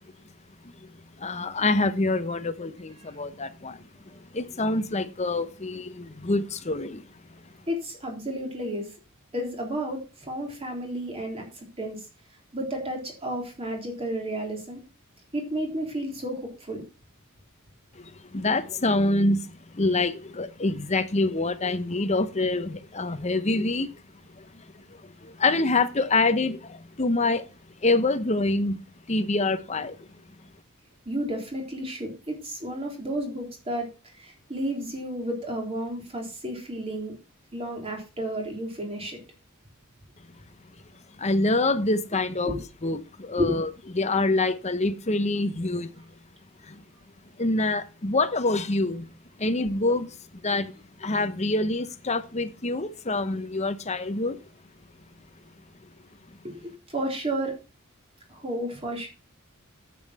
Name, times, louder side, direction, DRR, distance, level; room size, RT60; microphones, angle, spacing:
voice 1, 1.2-3.8 4.3-7.0 18.3-19.4 19.8-23.9 25.4-26.6 27.0-27.4 27.8-28.8 29.1-29.9 41.2-42.6 42.8-45.9 47.4-49.1 49.4-50.1 50.4-50.7 51.0-54.4, left 2 dB, 30° left, 1.0 m, -25 dB
voice 2, 7.7-8.9 9.3-12.0 12.5-14.8 15.3-16.8 31.1-37.2 37.5-39.2 42.5-42.6 43.4-43.6 56.4-57.6 58.3-59.1, right 1 dB, 25° right, 3.6 m, -32 dB
9.7 x 8.8 x 4.3 m
head